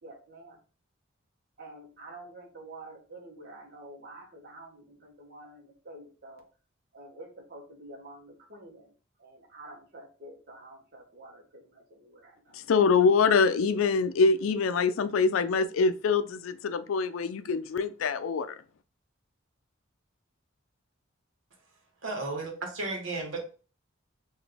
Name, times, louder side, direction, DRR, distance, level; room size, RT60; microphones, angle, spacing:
voice 1, 0.0-0.6 1.6-6.5 6.9-8.9 9.2-12.6, right 2 dB, 50° right, 1.0 m, -48 dB
voice 2, 12.5-18.6, left 4 dB, 85° left, 0.4 m, -24 dB
voice 3, 22.0-23.4, right 3 dB, 70° right, 1.2 m, -34 dB
3.9 x 2.5 x 3.4 m
head